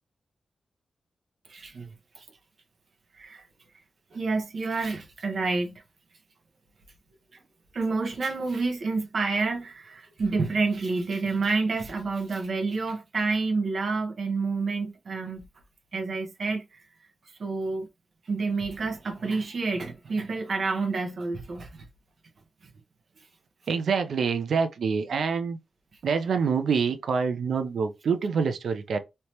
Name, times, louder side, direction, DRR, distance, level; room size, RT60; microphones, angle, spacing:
voice 1, 1.5-1.9 2.2-2.3 3.2-3.4 4.1-5.8 7.7-15.5 15.9-16.8 17.4-17.9 18.3-21.8, right 3 dB, 50° right, 0.9 m, -29 dB
voice 2, 23.7-25.6 26.0-29.0, right 5 dB, 70° right, 0.5 m, -26 dB
3.3 x 2.8 x 2.9 m
wide cardioid pair, 160°, 0 cm